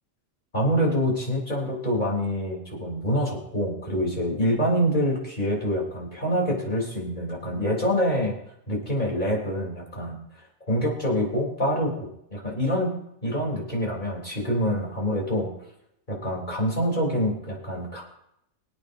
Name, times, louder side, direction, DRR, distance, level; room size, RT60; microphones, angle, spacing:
voice 1, 0.5-8.4 8.7-10.2 10.7-12.9 13.2-15.5 16.1-18.0, equal, 35° left, -2 dB, 3.6 m, -26 dB
25.5 x 8.6 x 2.7 m, 0.75 s
omnidirectional pair, 1.4 m